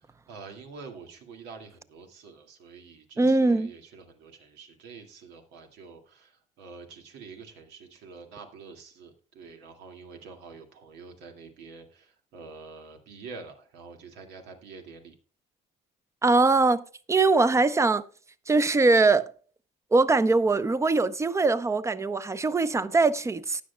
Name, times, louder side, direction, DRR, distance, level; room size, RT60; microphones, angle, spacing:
voice 1, 0.0-15.1, right 4 dB, 85° right, 2.2 m, -47 dB
voice 2, 3.2-3.7 16.2-16.8 17.1-18.0 18.5-19.3 19.9-23.6, right 3 dB, 15° right, 0.7 m, -22 dB
19.0 x 6.3 x 2.2 m
cardioid pair, 110°, 17 cm